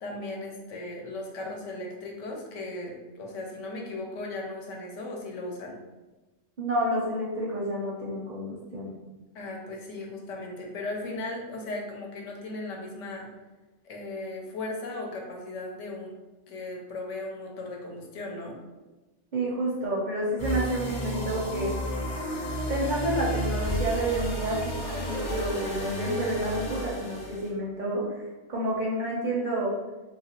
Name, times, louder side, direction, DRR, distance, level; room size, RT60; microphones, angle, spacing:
voice 1, 0.0-5.8 9.3-13.3 13.8-16.1 16.5-18.6, left 2 dB, 90° left, 0 dB, 1.0 m, -37 dB
voice 2, 6.6-8.9 19.3-21.7 22.7-28.2 28.5-29.8, right 1 dB, 55° right, -5 dB, 0.5 m, -29 dB
sound 1, 20.4-27.5, equal, 50° left, 0.6 m, -32 dB
2.9 x 2.4 x 2.7 m, 1.1 s
omnidirectional pair, 1.2 m